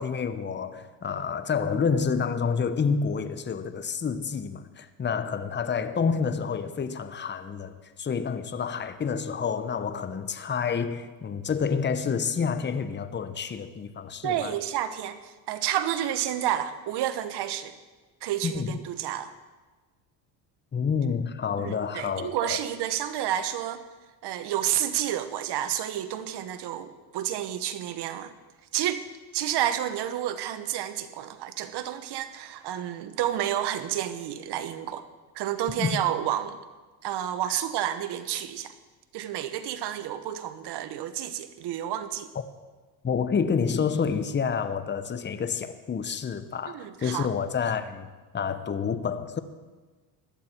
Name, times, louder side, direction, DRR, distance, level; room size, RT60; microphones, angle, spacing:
voice 1, 0.0-14.5 18.4-18.7 20.7-22.6 35.8-35.9 43.0-48.1 48.3-49.4, left 6 dB, 25° left, 11 dB, 1.0 m, -28 dB
voice 2, 14.2-17.8 18.2-19.3 21.6-23.8 24.2-28.3 28.7-29.0 29.3-35.0 35.3-36.6 37.0-38.7 39.1-42.3 46.7-47.3, right 11 dB, 65° right, 11 dB, 1.3 m, -30 dB
17.5 x 11.5 x 4.5 m, 1.3 s
cardioid pair, 100°, 44 cm